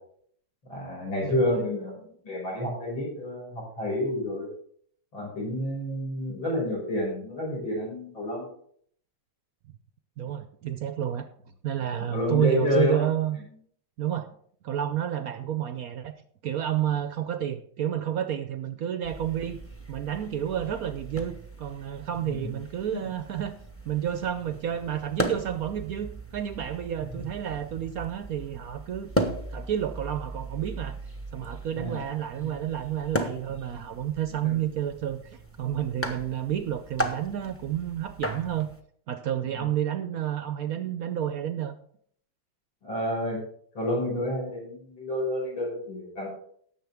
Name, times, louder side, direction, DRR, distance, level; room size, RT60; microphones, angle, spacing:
voice 1, 0.7-4.5 5.1-8.5 12.1-13.1 22.3-22.6 22.9-23.1 27.1-27.2 31.8-32.0 32.4-32.5 34.4-34.6 39.6-39.7 42.8-43.4 43.7-46.3, left 1 dB, 80° left, -3 dB, 6.1 m, -29 dB
voice 2, 1.2-1.5 10.2-11.3 11.6-13.4 14.0-14.3 14.6-16.1 16.4-19.6 19.9-23.6 23.8-29.1 29.5-31.0 31.3-38.7 39.1-41.7, right 10 dB, 70° right, 10 dB, 0.8 m, -30 dB
sound 1, 19.0-38.8, right 1 dB, 15° left, 0.5 m, -37 dB
17.5 x 7.1 x 3.5 m, 0.62 s
omnidirectional pair, 2.2 m